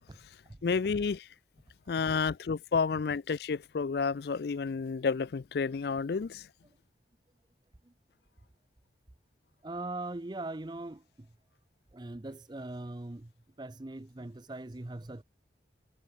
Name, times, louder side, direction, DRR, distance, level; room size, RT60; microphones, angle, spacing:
voice 1, 0.6-1.2 1.9-6.4, left 5 dB, 55° left, 0.4 m, -30 dB
voice 2, 9.6-11.3 11.9-13.3 13.6-15.2, right 2 dB, 25° right, 0.6 m, -41 dB
head